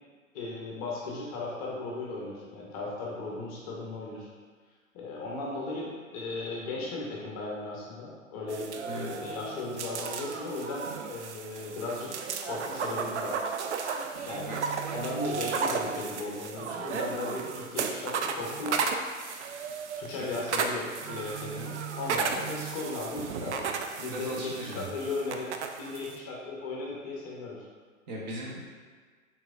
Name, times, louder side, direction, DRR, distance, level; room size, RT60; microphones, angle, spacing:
voice 1, 0.3-4.3 4.9-12.1 12.4-13.4 14.2-14.7 14.9-18.8 20.0-23.7 24.0-25.5 25.8-27.7, left 3 dB, 25° left, -4 dB, 0.7 m, -36 dB
sound 1, 8.5-26.2, right 5 dB, 60° right, 0.5 m, -34 dB
voice 2, 24.0-24.9 28.1-28.7, right 1 dB, 35° right, -3 dB, 0.7 m, -38 dB
4.7 x 3.5 x 2.4 m, 1.5 s
figure-of-eight pair, 120°, 41 cm